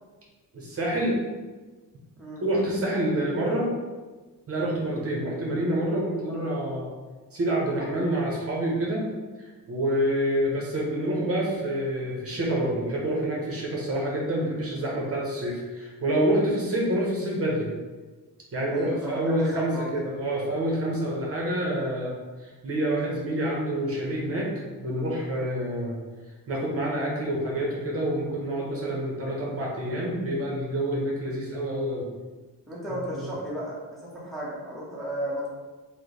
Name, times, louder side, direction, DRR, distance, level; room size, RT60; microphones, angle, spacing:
voice 1, 0.5-1.2 2.4-3.7 4.5-6.9 7.3-9.1 9.7-17.7 18.5-22.1 22.4-24.5 24.8-26.0 26.5-32.1, right 1 dB, 40° right, -3 dB, 0.7 m, -27 dB
voice 2, 18.7-20.1 20.9-21.1 32.7-35.5, equal, ahead, -7 dB, 0.8 m, -34 dB
3.0 x 2.1 x 3.9 m, 1.3 s
cardioid pair, 130°, 35 cm